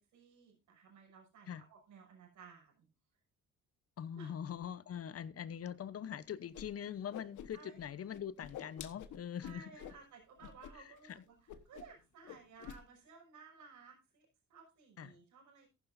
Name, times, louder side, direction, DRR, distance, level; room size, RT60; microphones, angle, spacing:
voice 1, 0.1-2.9 4.1-4.3 7.5-7.8 9.4-15.7, right 5 dB, 75° right, 5.9 m, -57 dB
voice 2, 4.0-9.7 11.1-11.2 15.0-15.1, left 9 dB, 50° left, 0.9 m, -43 dB
Whoosh swoosh swish, 6.5-6.6 6.9-7.8 8.1-10.0 10.4-10.7 11.0-11.1 11.5-12.0 12.2-12.8, left 9 dB, 80° left, 1.4 m, -49 dB
14.5 x 11.5 x 2.7 m
cardioid pair, 90°, 30 cm